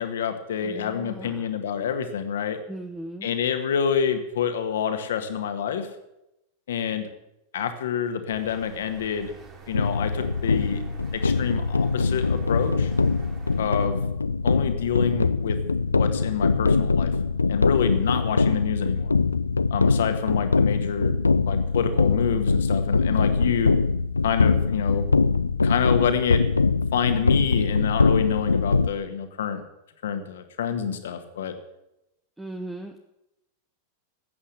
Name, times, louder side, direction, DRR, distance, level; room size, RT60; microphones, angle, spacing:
voice 1, 0.0-2.6 3.2-5.9 6.7-7.1 7.5-9.3 9.7-10.8 11.1-12.9 13.6-14.0 14.4-15.6 15.9-17.1 17.5-19.1 19.7-21.2 21.5-23.8 24.2-25.1 25.6-26.4 26.9-29.6 30.0-31.5, left 7 dB, 60° left, 8 dB, 1.7 m, -27 dB
voice 2, 0.6-1.5 2.7-3.3 32.4-33.0, right 1 dB, 5° right, 5 dB, 1.1 m, -38 dB
sound 1, 8.3-13.9, right 5 dB, 30° right, 3.7 m, -46 dB
sound 2, 9.7-28.9, left 4 dB, 80° left, 0.4 m, -23 dB
14.0 x 8.6 x 9.9 m, 0.88 s
figure-of-eight pair, 90°, 0 cm